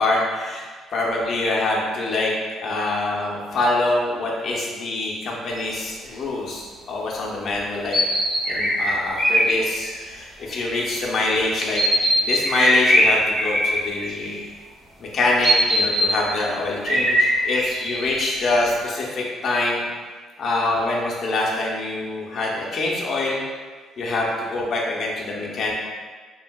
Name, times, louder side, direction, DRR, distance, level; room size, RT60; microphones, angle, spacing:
voice 1, 0.0-2.3 2.6-8.0 8.5-11.8 12.2-14.4 15.0-19.8 20.4-23.4 24.0-25.7, left 2 dB, 40° left, -4 dB, 0.5 m, -25 dB
sound 1, 5.6-5.7 7.9-9.5 9.8-10.0 11.7-14.2 15.4-16.1 16.9-18.7, equal, 30° right, 0.7 m, -20 dB
3.1 x 2.6 x 2.2 m, 1.5 s
cardioid pair, 160°, 0 cm